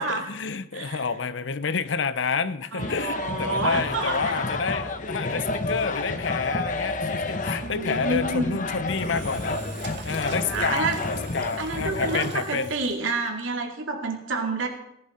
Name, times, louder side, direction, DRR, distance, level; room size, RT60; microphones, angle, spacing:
voice 1, 0.0-9.6 10.0-12.7, left 5 dB, 65° left, 0.7 m, -29 dB
voice 2, 0.7-1.0 2.7-4.4 7.6-8.6 10.2-11.0 11.6-14.7, right 3 dB, 75° right, 2.4 m, -29 dB
sound 1, 2.8-12.3, left 2 dB, 40° left, 1.0 m, -30 dB
Engine / Drill, 8.9-13.4, right 1 dB, 60° right, 1.9 m, -40 dB
17.5 x 11.0 x 4.3 m
head